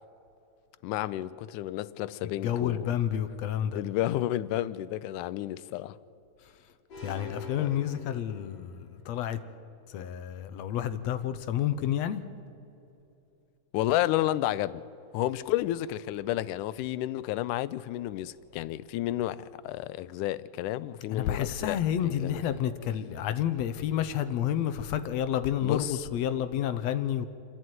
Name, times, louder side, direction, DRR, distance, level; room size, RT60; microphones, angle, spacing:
voice 1, 0.8-2.9 3.7-6.0 7.6-7.7 13.7-14.8 15.1-22.6 25.6-26.0, left 14 dB, 90° left, 2.1 m, -31 dB
voice 2, 2.2-3.8 7.0-9.4 9.9-12.2 21.1-27.3, left 10 dB, 70° left, 1.9 m, -30 dB
sound 1, 6.9-8.9, left 3 dB, 55° left, 3.5 m, -45 dB
28.0 x 11.0 x 9.4 m
omnidirectional pair, 3.5 m